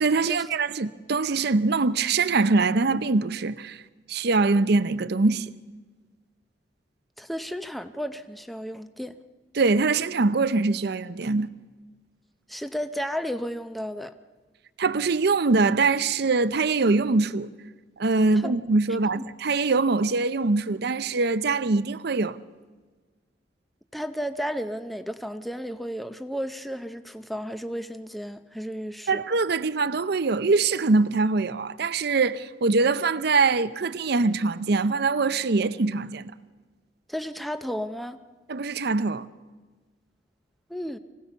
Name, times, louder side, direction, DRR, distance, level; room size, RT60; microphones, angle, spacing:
voice 1, 0.0-3.8 4.1-5.5 9.5-11.5 14.8-17.5 18.0-22.4 29.1-36.3 38.5-39.3, right 3 dB, 65° right, 0.7 m, -23 dB
voice 2, 7.2-9.2 12.5-14.1 18.4-18.5 23.9-29.2 37.1-38.2 40.7-41.0, equal, ahead, 0.7 m, -33 dB
24.5 x 17.0 x 7.0 m
head